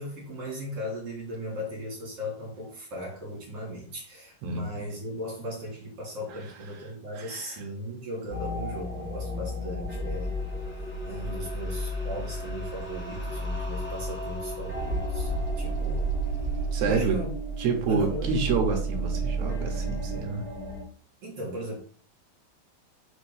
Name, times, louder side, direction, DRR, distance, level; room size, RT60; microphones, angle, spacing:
voice 1, 0.0-10.3 11.1-16.1 16.8-17.3 17.9-18.4 21.2-21.8, equal, 45° right, -3 dB, 2.3 m, -37 dB
voice 2, 4.4-4.8 6.3-6.4 7.2-7.6 16.7-17.2 17.6-20.4, right 4 dB, 70° right, 3 dB, 1.8 m, -28 dB
sound 1, 8.3-20.8, right 1 dB, 10° left, 0.6 m, -32 dB
Bird, 14.7-17.1, equal, 75° left, 2.5 m, -34 dB
5.3 x 3.7 x 5.0 m, 0.41 s
omnidirectional pair, 4.4 m